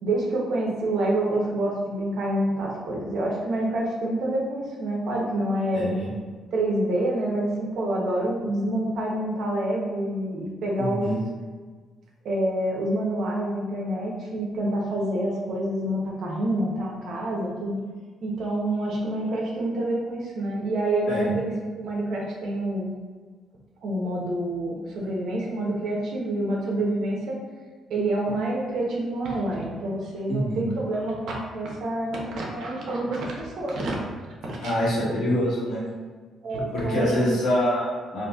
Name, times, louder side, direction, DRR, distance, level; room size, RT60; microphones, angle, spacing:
voice 1, 0.0-5.9 6.5-11.1 12.2-17.8 18.2-21.5 21.8-22.9 23.8-27.4 27.9-34.0 34.5-34.7 36.4-37.3, right 1 dB, 70° right, -2 dB, 0.8 m, -27 dB
voice 2, 5.7-6.1 10.7-11.2 21.1-21.3 30.3-30.6 34.6-35.8 36.7-38.3, equal, 75° left, -7 dB, 1.4 m, -25 dB
4.0 x 2.6 x 2.3 m, 1.5 s
cardioid pair, 90°, 0 cm